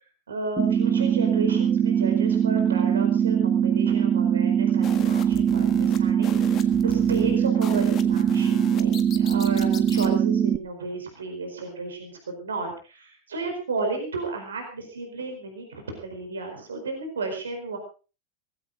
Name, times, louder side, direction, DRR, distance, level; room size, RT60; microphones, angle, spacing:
voice 1, 0.3-17.8, right 3 dB, 70° right, 4 dB, 4.4 m, -33 dB
sound 1, 0.6-10.6, right 8 dB, 20° right, 1.2 m, -22 dB
sound 2, 4.8-10.1, left 9 dB, 30° left, 1.6 m, -39 dB
19.0 x 15.5 x 3.9 m, 0.35 s
figure-of-eight pair, 90°, 0 cm